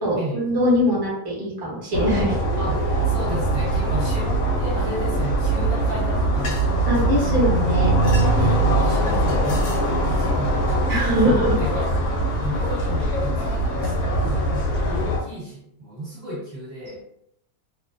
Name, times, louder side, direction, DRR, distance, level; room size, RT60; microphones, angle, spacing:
voice 1, 0.0-2.4 6.9-7.9 10.9-11.5, equal, 25° right, -5 dB, 0.5 m, -22 dB
sound 1, 1.9-15.2, right 1 dB, 80° left, 1.0 m, -22 dB
voice 2, 2.6-6.9 8.3-11.9 12.3-17.0, equal, 45° right, -7 dB, 1.0 m, -33 dB
2.5 x 2.0 x 2.4 m, 0.78 s
omnidirectional pair, 1.6 m